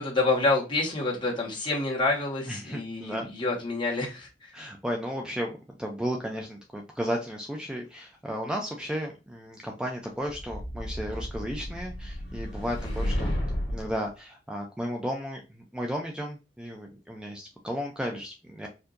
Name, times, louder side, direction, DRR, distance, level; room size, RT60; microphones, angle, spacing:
voice 1, 0.0-4.5 12.8-13.2, left 3 dB, 30° left, 1.4 m, -28 dB
voice 2, 2.5-3.3 4.5-15.4 15.7-18.7, equal, 5° right, 0.4 m, -34 dB
sound 1, 10.3-14.0, equal, 70° left, 1.7 m, -32 dB
4.5 x 2.7 x 2.5 m
head